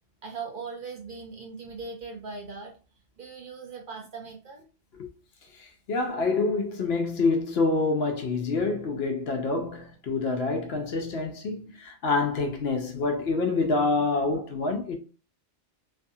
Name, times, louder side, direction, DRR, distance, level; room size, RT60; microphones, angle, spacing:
voice 1, 0.2-2.8 3.2-4.6, right 4 dB, 55° right, 0.7 m, -39 dB
voice 2, 5.5-15.0, left 3 dB, 65° left, 0.8 m, -27 dB
2.6 x 2.4 x 2.6 m
omnidirectional pair, 1.2 m